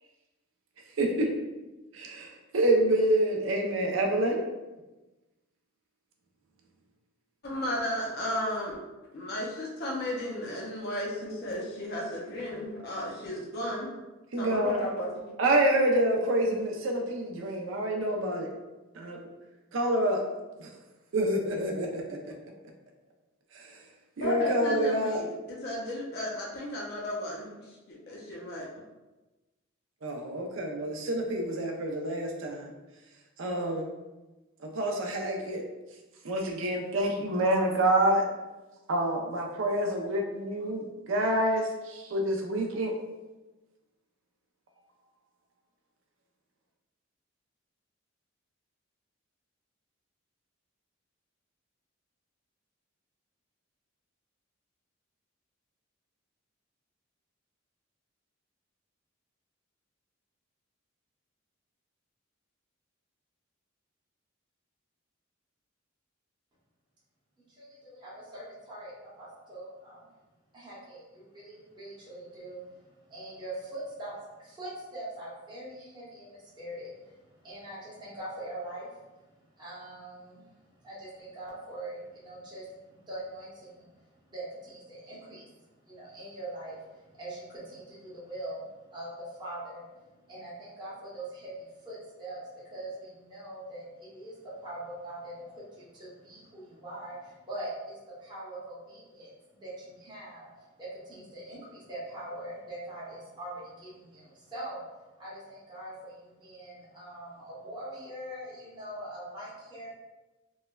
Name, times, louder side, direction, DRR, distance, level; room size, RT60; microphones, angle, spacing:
voice 1, 1.0-1.3 1.9-4.4 14.3-14.8 15.4-18.5 19.0-19.2 19.7-20.2 20.6-20.7 21.1-22.3 23.5-23.8 24.2-25.2 30.0-32.7 33.4-33.9 34.6-35.6 36.2-38.2 38.9-42.9, right 1 dB, 70° right, 2 dB, 0.4 m, -27 dB
voice 2, 7.4-8.8 9.1-13.9 14.4-15.1 24.2-27.8 28.1-28.7, left 1 dB, 50° left, -3 dB, 0.5 m, -34 dB
voice 3, 67.5-70.0 70.5-79.1 79.5-83.9 84.2-85.5 85.8-89.9 90.3-100.5 100.8-104.8 105.2-109.9, right 1 dB, 20° right, -9 dB, 0.8 m, -42 dB
3.0 x 2.1 x 2.2 m, 1.1 s
head